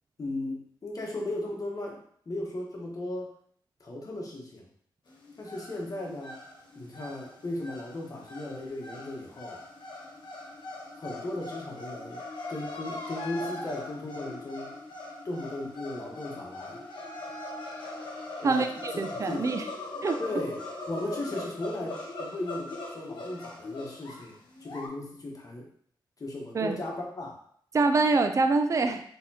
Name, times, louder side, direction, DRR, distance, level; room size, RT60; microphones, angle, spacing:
voice 1, 0.2-3.3 3.8-4.7 5.4-6.4 6.7-9.6 11.0-12.2 12.5-14.8 15.2-16.8 18.4-18.7 19.3-19.5 20.2-25.7 26.2-27.4, left 1 dB, 45° left, -1 dB, 1.2 m, -36 dB
sound 1, 5.1-24.9, left 2 dB, 65° left, 1.2 m, -41 dB
voice 2, 18.4-19.6 20.0-20.2 26.5-26.8 27.7-29.0, right 3 dB, 40° right, 7 dB, 0.4 m, -25 dB
4.1 x 3.6 x 2.8 m, 0.62 s
cardioid pair, 70°, 8 cm